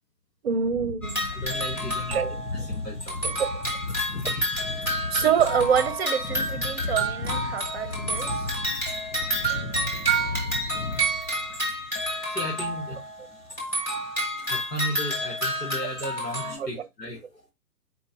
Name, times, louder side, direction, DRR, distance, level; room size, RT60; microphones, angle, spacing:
voice 1, 0.4-1.3 2.1-2.4 3.2-3.3 4.2-4.3 5.1-8.5 16.6-16.7, right 7 dB, 40° right, 0.6 m, -26 dB
sound 1, 0.6-11.7, left 3 dB, 75° left, 1.4 m, -35 dB
sound 2, 1.0-2.7 3.0-13.2 13.5-16.5, right 1 dB, 5° left, 0.8 m, -29 dB
voice 2, 1.3-2.2 2.5-3.3 3.9-4.2 8.6-9.4 12.2-13.0 13.7-13.8 14.3-17.4, equal, 90° left, 1.5 m, -36 dB
4.5 x 2.7 x 3.5 m
figure-of-eight pair, 125°, 47 cm